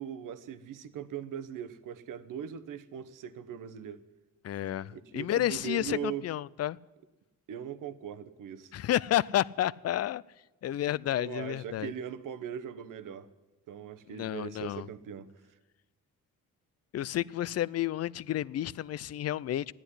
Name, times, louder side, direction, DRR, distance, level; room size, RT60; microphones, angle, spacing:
voice 1, 0.0-4.0 4.9-6.3 7.5-8.7 11.1-13.3 13.7-15.3, right 8 dB, 75° right, 0.9 m, -40 dB
voice 2, 4.4-6.8 8.7-10.2 10.6-11.9 14.1-14.9 16.9-19.7, left 12 dB, 50° left, 0.4 m, -31 dB
14.0 x 10.0 x 9.9 m
cardioid pair, 90°, 32 cm